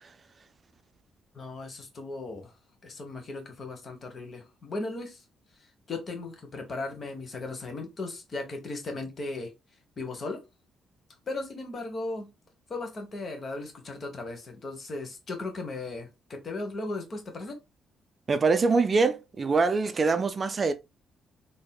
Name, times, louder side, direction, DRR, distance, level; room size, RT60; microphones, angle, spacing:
voice 1, 1.3-2.5 2.8-5.2 5.9-9.5 10.0-10.4 11.3-12.3 12.7-17.6, left 2 dB, 40° left, 1.1 m, -36 dB
voice 2, 18.3-20.7, right 4 dB, 35° right, 0.4 m, -24 dB
3.7 x 2.7 x 2.2 m
cardioid pair, 90°, 0 cm